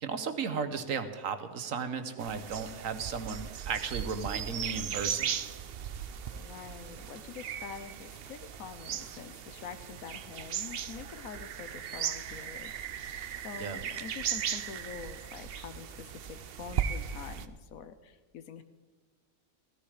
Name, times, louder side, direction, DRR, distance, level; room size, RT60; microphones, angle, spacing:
voice 1, 0.0-5.4 13.6-13.8, right 6 dB, 70° right, 10 dB, 1.3 m, -35 dB
sound 1, 2.2-17.5, right 8 dB, 55° right, 0.7 m, -37 dB
voice 2, 6.4-18.6, left 7 dB, 85° left, 11 dB, 1.3 m, -46 dB
15.5 x 13.5 x 5.0 m, 1.4 s
omnidirectional pair, 1.4 m